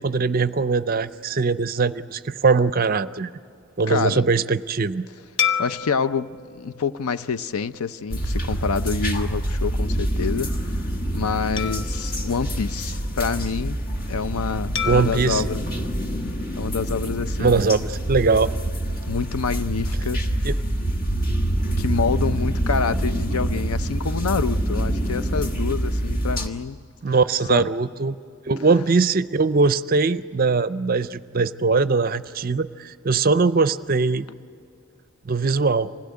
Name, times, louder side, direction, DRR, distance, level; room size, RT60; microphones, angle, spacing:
voice 1, 0.0-3.3 3.8-5.1 14.8-15.4 17.4-18.5 20.4-20.5 27.0-28.2 28.5-34.3 35.3-35.9, right 4 dB, 40° right, 0.5 m, -21 dB
voice 2, 3.9-4.2 5.6-10.5 11.1-13.8 14.1-15.6 16.6-17.6 19.1-20.5 21.8-26.8 27.5-27.7, left 5 dB, 90° left, 0.5 m, -27 dB
sound 1, 5.4-8.1 8.6-8.8 11.6-13.4 14.8-17.0, left 7 dB, 65° left, 0.9 m, -32 dB
sound 2, 8.1-26.5, right 1 dB, 40° left, 1.4 m, -26 dB
26.0 x 17.0 x 9.6 m
head